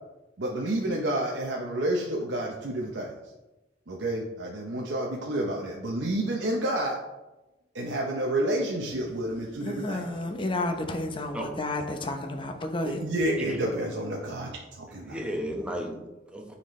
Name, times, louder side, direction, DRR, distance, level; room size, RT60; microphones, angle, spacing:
voice 1, 0.4-3.1 3.9-7.0 7.7-10.1 13.0-15.2, right 1 dB, 90° right, 0.8 m, -29 dB
voice 2, 9.6-13.0, left 2 dB, 30° left, 0.7 m, -31 dB
voice 3, 14.9-16.6, equal, 5° right, 1.0 m, -35 dB
9.4 x 4.2 x 3.2 m
head